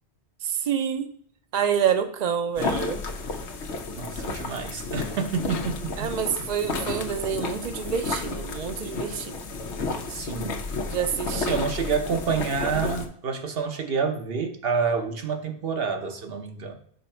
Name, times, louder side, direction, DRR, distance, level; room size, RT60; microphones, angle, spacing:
voice 1, 0.4-1.1 1.5-3.0 6.0-9.3 10.9-11.6, right 8 dB, 45° right, 9 dB, 0.7 m, -27 dB
sound 1, 2.5-13.1, left 3 dB, 85° left, 1.1 m, -32 dB
voice 2, 4.0-6.1 10.1-10.6 11.3-16.7, right 5 dB, 60° right, 5 dB, 1.0 m, -28 dB
5.5 x 5.1 x 4.4 m, 0.65 s
omnidirectional pair, 1.1 m